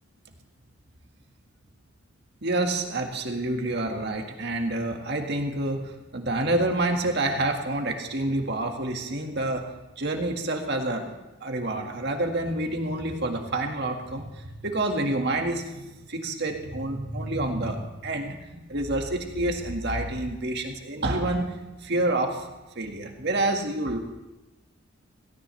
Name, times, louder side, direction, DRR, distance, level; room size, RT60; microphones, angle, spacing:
voice 1, 2.4-9.6 10.0-21.5 21.8-22.5 22.8-24.0, right 2 dB, 55° right, 3 dB, 1.8 m, -28 dB
17.0 x 16.5 x 3.3 m, 1.0 s
head